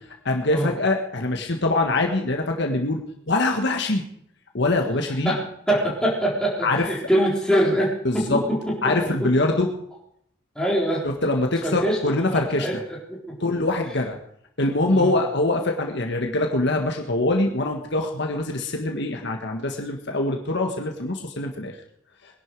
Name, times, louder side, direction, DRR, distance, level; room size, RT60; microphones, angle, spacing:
voice 1, 0.2-3.0 3.3-4.0 4.5-5.3 6.6-6.8 8.0-8.4 8.8-9.7 11.0-12.7 13.4-14.2 14.6-21.7, left 2 dB, 55° left, 2 dB, 1.6 m, -23 dB
voice 2, 5.2-8.9 9.2-9.3 10.6-11.0 11.6-13.4 14.9-15.2, equal, 5° left, -4 dB, 3.9 m, -24 dB
21.0 x 11.0 x 4.8 m, 0.70 s
head